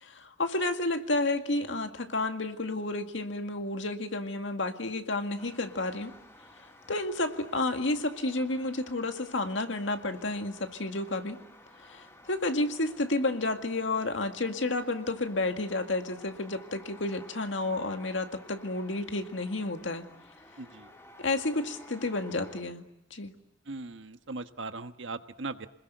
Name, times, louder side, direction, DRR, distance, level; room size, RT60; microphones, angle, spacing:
voice 1, 0.0-6.1 6.9-11.4 11.8-20.1 21.2-22.8 23.1-23.3, left 2 dB, 85° left, 6 dB, 2.0 m, -31 dB
sound 1, 5.4-22.6, left 1 dB, 15° left, 3.8 m, -54 dB
voice 2, 20.6-20.9 23.7-25.7, right 3 dB, 85° right, 9 dB, 1.4 m, -39 dB
29.0 x 21.0 x 9.3 m, 0.88 s
head